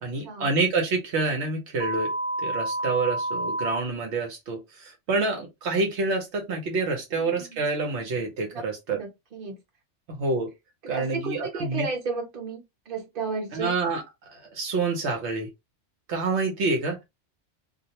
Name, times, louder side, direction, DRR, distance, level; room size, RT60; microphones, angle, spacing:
voice 1, 0.0-2.1 2.4-9.0 10.1-10.5 10.9-11.9 13.5-14.0 14.3-15.5 16.1-17.0, right 3 dB, 75° right, 1.0 m, -27 dB
sound 1, 1.8-3.8, right 1 dB, 10° right, 0.4 m, -29 dB
voice 2, 8.9-9.6 10.8-13.7, right 4 dB, 55° right, 0.9 m, -33 dB
2.4 x 2.0 x 2.7 m
omnidirectional pair, 1.2 m